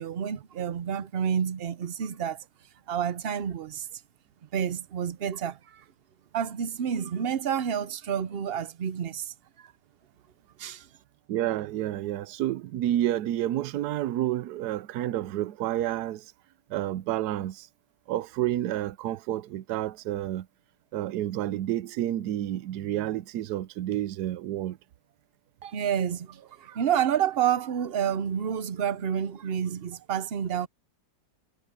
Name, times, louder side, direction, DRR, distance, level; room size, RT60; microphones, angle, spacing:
voice 1, 0.0-2.4 2.9-3.9 4.5-5.8 6.3-9.3 10.6-10.9 25.6-30.7, right 8 dB, 55° right, 0.7 m, -29 dB
voice 2, 11.3-16.3 16.7-17.7 18.1-20.5 20.9-24.8, right 13 dB, 70° right, 1.2 m, -30 dB
omnidirectional pair, 1.8 m